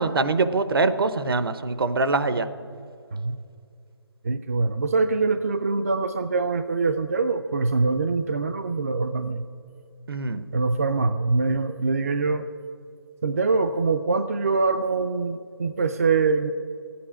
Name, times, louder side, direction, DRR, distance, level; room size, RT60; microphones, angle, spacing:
voice 1, 0.0-2.5 10.1-10.4, right 3 dB, 60° right, 11 dB, 0.9 m, -23 dB
voice 2, 4.2-9.4 10.5-12.5 13.2-16.5, right 4 dB, 35° right, 9 dB, 0.4 m, -24 dB
13.5 x 8.5 x 9.9 m, 2.3 s
hypercardioid pair, 170°, 14 cm